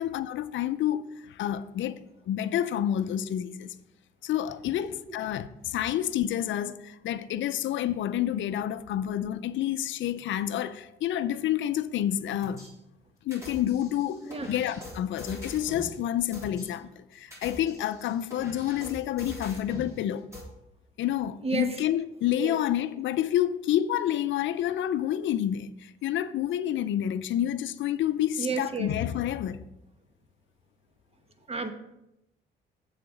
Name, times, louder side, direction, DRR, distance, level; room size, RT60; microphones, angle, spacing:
voice 1, 0.0-2.0 2.3-3.7 4.2-12.6 13.3-14.2 14.5-20.3 21.0-29.6, left 11 dB, 70° left, 0.5 m, -29 dB
sound 1, 12.4-12.7 13.3-15.9 16.3-16.7 17.2-19.9 20.3-20.4, left 1 dB, 15° right, 3.5 m, -43 dB
voice 2, 21.4-21.8 22.4-22.6 28.4-28.9 31.5-31.7, right 4 dB, 30° right, 1.1 m, -31 dB
8.0 x 6.8 x 4.9 m
cardioid pair, 90°, 20 cm